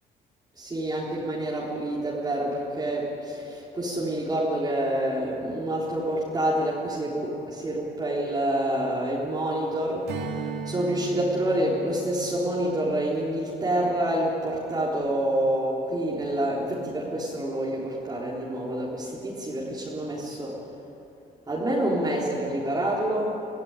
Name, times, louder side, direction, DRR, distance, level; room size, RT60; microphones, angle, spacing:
voice 1, 0.6-20.6 21.5-23.4, right 1 dB, 25° right, -6 dB, 3.8 m, -27 dB
Strum, 10.1-14.9, right 4 dB, 75° right, 2.3 m, -38 dB
24.5 x 14.5 x 9.9 m, 2.9 s
cardioid pair, 110°, 17 cm